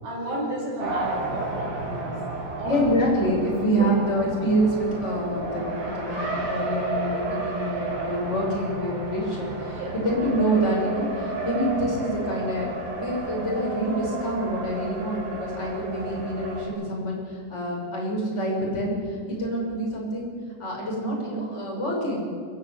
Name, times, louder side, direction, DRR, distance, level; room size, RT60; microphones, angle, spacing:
voice 1, 0.0-2.2 2.6-3.0 3.8-4.0 9.7-10.0, right 1 dB, 65° right, -1 dB, 7.3 m, -32 dB
Race car auto racing, 0.8-16.7, right 3 dB, 45° right, 6.9 m, -32 dB
voice 2, 2.6-12.7 13.0-20.3 20.6-22.3, equal, 15° left, -3 dB, 6.4 m, -26 dB
28.5 x 11.5 x 9.8 m, 2.3 s
omnidirectional pair, 5.3 m